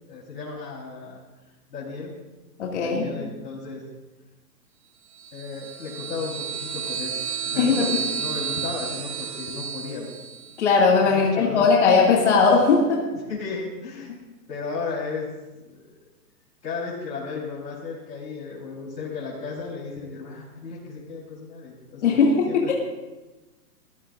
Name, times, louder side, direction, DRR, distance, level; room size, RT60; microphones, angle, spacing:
voice 1, 0.1-1.2 1.7-2.1 2.7-3.8 5.3-7.2 7.4-10.1 11.0-11.7 13.1-14.2 14.5-15.7 16.6-22.2 22.5-22.7, left 4 dB, 90° left, -5 dB, 4.2 m, -34 dB
voice 2, 2.6-3.1 7.6-7.9 10.6-13.0 22.0-22.7, left 4 dB, 45° left, -2 dB, 2.2 m, -19 dB
sound 1, 5.1-10.6, right 7 dB, 45° right, 1.1 m, -32 dB
22.5 x 15.0 x 2.6 m, 1.1 s
hypercardioid pair, 175°, 48 cm